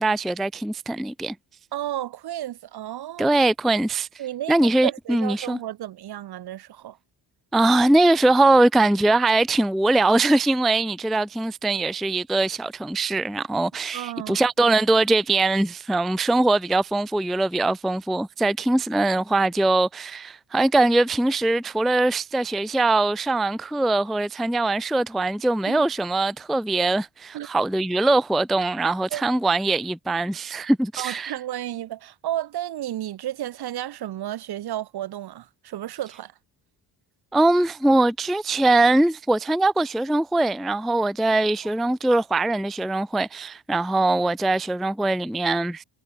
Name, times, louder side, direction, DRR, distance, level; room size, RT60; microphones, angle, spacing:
voice 1, 0.0-1.4 3.2-4.1 4.5-5.6 7.5-31.3 37.3-45.8, right 2 dB, ahead, 0.3 m, -22 dB
voice 2, 1.7-3.4 4.2-7.0 13.9-14.4 25.7-25.8 27.3-27.5 29.1-29.2 31.0-36.3, right 12 dB, 65° right, 2.2 m, -32 dB
cardioid pair, 105°, 40 cm